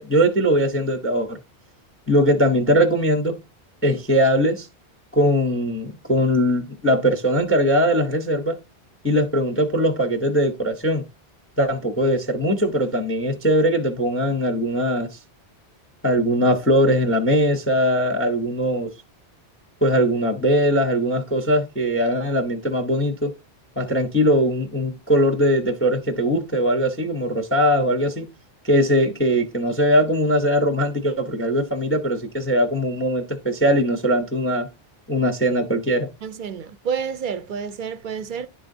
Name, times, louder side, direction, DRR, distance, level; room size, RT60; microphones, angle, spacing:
voice 1, 0.0-1.4 2.1-3.4 3.8-4.7 5.1-8.6 9.0-11.0 11.6-15.2 16.0-18.9 19.8-23.3 23.8-28.3 28.6-34.7 35.1-36.1, equal, 15° left, 0.6 m, -20 dB
voice 2, 36.2-38.5, right 6 dB, 55° right, 0.6 m, -29 dB
11.0 x 3.8 x 2.6 m
omnidirectional pair, 1.1 m